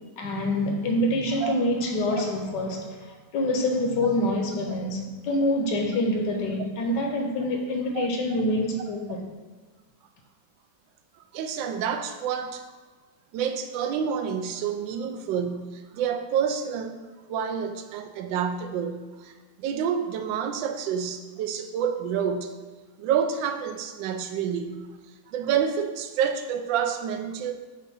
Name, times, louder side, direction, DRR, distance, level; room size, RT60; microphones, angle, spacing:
voice 1, 0.2-9.2, left 1 dB, 70° left, 3 dB, 1.2 m, -26 dB
voice 2, 11.3-12.6 13.3-17.0 17.3-19.3 19.6-22.5 23.0-24.9 25.3-27.5, right 7 dB, 80° right, 7 dB, 1.2 m, -28 dB
7.2 x 2.5 x 5.5 m, 1.3 s
omnidirectional pair, 2.1 m